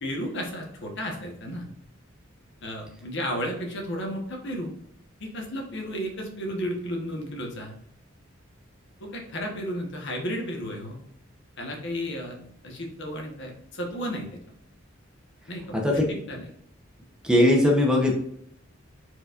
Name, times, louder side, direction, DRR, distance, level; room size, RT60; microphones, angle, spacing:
voice 1, 0.0-1.7 2.6-4.8 5.2-7.7 9.0-11.0 11.6-14.4 15.5-16.5, equal, 60° left, 1 dB, 1.1 m, -33 dB
voice 2, 17.2-18.1, left 1 dB, 5° right, -1 dB, 0.8 m, -19 dB
4.5 x 4.1 x 2.4 m, 0.72 s
head